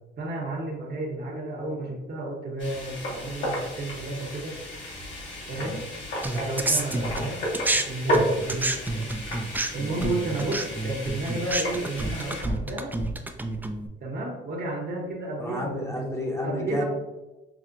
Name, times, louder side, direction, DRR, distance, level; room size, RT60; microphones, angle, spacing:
voice 1, 0.2-4.6 5.5-5.8 6.3-9.1 9.7-13.0 14.0-16.1 16.4-16.8, right 2 dB, 50° right, 0 dB, 0.9 m, -32 dB
sound 1, 2.6-12.4, equal, 70° left, 1.4 m, -33 dB
sound 2, 6.2-7.8 8.1-13.9, right 2 dB, 10° right, 0.3 m, -29 dB
voice 2, 15.4-16.8, left 1 dB, 15° left, -1 dB, 0.8 m, -31 dB
5.9 x 2.1 x 2.5 m, 1.0 s
cardioid pair, 90°, 20 cm